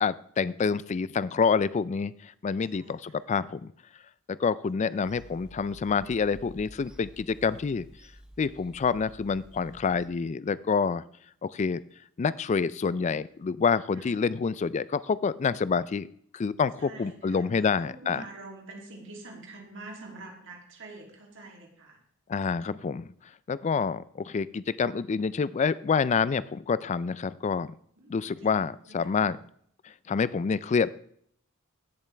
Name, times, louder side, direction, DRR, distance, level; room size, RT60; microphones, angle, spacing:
voice 1, 0.0-3.7 4.3-7.9 8.4-11.0 11.4-11.8 12.2-16.1 16.3-18.2 22.3-23.1 23.5-27.7 28.1-29.4 29.8-30.9, left 5 dB, 30° left, 18 dB, 0.3 m, -27 dB
voice 2, 2.7-3.3 4.9-5.0 13.9-14.1 16.8-22.0 28.0-28.5 28.8-29.0, right 2 dB, 60° right, 0 dB, 2.8 m, -46 dB
Bird vocalization bird call bird song / Telephone, 5.0-10.1, equal, 5° right, 0.7 m, -51 dB
15.5 x 7.1 x 3.3 m, 0.64 s
head